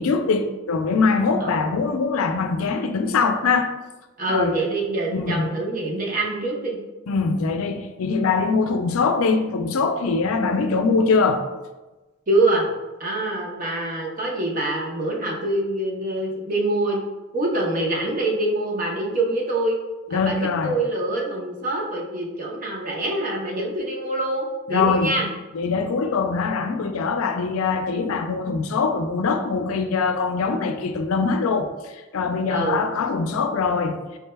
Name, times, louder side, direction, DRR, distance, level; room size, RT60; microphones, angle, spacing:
voice 1, 0.0-3.7 4.3-4.6 5.1-5.5 7.1-11.4 20.1-20.8 24.7-25.2 25.5-34.0, left 4 dB, 80° left, 0.4 m, -22 dB
voice 2, 4.2-6.8 12.3-12.7 13.0-17.0 17.3-19.7 20.1-25.3 32.5-32.9, right 2 dB, 40° right, 0.6 m, -25 dB
4.7 x 3.2 x 2.2 m
head